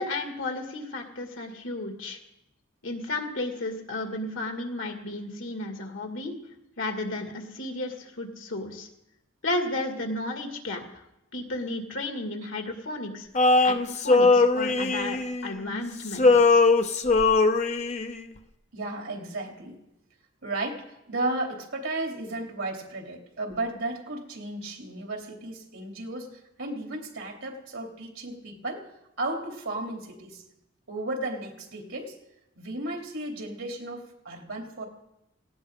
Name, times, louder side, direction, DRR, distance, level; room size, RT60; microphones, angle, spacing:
voice 1, 0.0-2.2 2.8-6.3 6.8-8.9 9.4-10.8 11.3-13.3 13.6-16.6, left 2 dB, 80° left, 3 dB, 2.3 m, -33 dB
Male singing, 13.4-15.8 16.1-18.2, left 3 dB, 35° left, 0.6 m, -21 dB
voice 2, 18.7-19.8 20.4-28.9 29.2-30.4 30.9-32.1 32.6-34.8, right 2 dB, 80° right, 1 dB, 3.2 m, -34 dB
18.0 x 17.0 x 3.8 m, 0.86 s
head